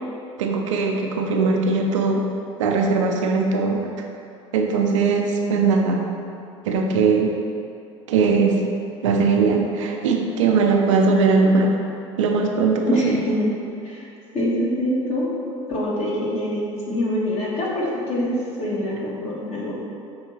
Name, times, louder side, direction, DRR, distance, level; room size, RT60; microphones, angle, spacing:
voice 1, 0.4-2.2 2.6-3.9 4.5-6.1 6.6-7.3 8.1-8.7 9.0-11.8 12.2-13.2, right 4 dB, 75° right, 2 dB, 0.4 m, -20 dB
voice 2, 12.8-13.5 13.8-14.0 14.3-15.3 15.7-19.7, left 1 dB, 45° left, -5 dB, 1.2 m, -24 dB
5.4 x 2.9 x 2.9 m, 2.6 s
hypercardioid pair, 70°, 16 cm